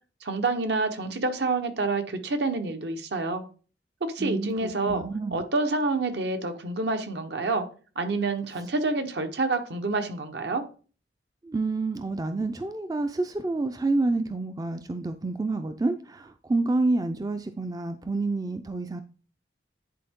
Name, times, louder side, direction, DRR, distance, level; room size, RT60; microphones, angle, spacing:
voice 1, 0.2-3.4 4.0-5.0 5.3-7.6 8.0-10.6, right 3 dB, 65° right, 7 dB, 1.0 m, -28 dB
voice 2, 4.2-5.4 11.4-19.0, right 2 dB, 20° right, 8 dB, 0.4 m, -28 dB
10.0 x 4.3 x 3.7 m, 0.38 s
head